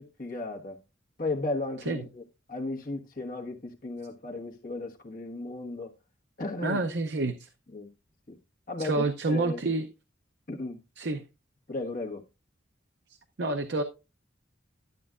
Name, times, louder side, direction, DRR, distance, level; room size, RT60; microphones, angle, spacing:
voice 1, 0.2-0.8 1.2-2.2 2.5-5.9 6.4-6.8 7.7-7.9 8.3-8.4 8.7-9.7 10.5-10.8 11.7-12.2, left 2 dB, 50° left, 1.4 m, -35 dB
voice 2, 6.6-7.5 8.8-9.9 11.0-11.2 13.4-13.8, right 2 dB, 60° right, 0.6 m, -28 dB
12.0 x 7.9 x 2.4 m
head